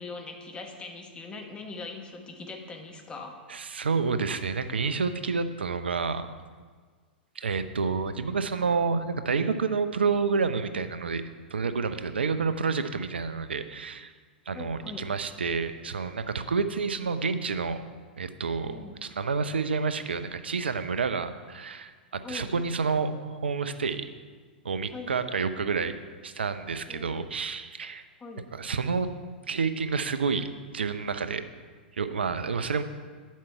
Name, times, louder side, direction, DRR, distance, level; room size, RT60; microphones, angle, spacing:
voice 1, 0.0-3.4 14.5-15.1 18.6-18.9 22.2-22.5 24.9-25.2 26.9-27.1 28.2-28.5, left 3 dB, 15° left, 3 dB, 1.3 m, -41 dB
voice 2, 3.5-6.3 7.4-11.2 11.5-14.1 14.5-17.8 18.2-24.1 24.6-26.0 26.2-28.0 28.5-29.1 29.5-30.5 30.7-31.4 32.0-32.8, right 5 dB, 80° right, 10 dB, 0.6 m, -29 dB
9.0 x 7.4 x 4.5 m, 1.5 s
figure-of-eight pair, 100°, 6 cm